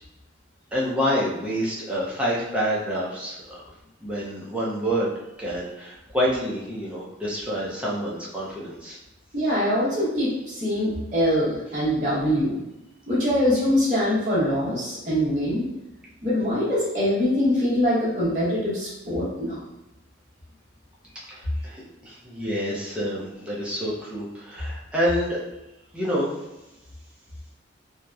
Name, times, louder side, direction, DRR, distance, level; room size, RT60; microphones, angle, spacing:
voice 1, 0.7-3.6 4.0-5.1 5.4-9.0 21.3-25.4 25.9-26.3, equal, 5° right, -6 dB, 0.5 m, -27 dB
voice 2, 9.3-12.6 13.1-15.7 16.2-19.6, equal, 40° right, -10 dB, 0.9 m, -23 dB
2.8 x 2.0 x 2.3 m, 0.94 s
head